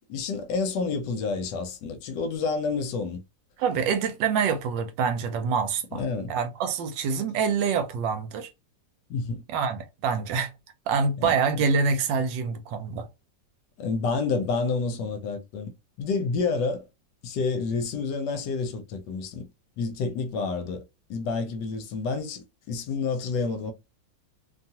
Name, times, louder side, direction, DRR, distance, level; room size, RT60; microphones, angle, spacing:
voice 1, 0.1-3.2 5.9-6.3 9.1-9.4 11.2-11.6 13.8-15.7 16.0-16.8 17.2-19.5 19.8-20.8 21.1-23.7, left 4 dB, 75° left, 1.2 m, -29 dB
voice 2, 3.6-6.0 6.3-8.5 9.5-10.5 10.9-13.1, right 5 dB, 80° right, 1.3 m, -26 dB
2.9 x 2.3 x 2.7 m
omnidirectional pair, 2.0 m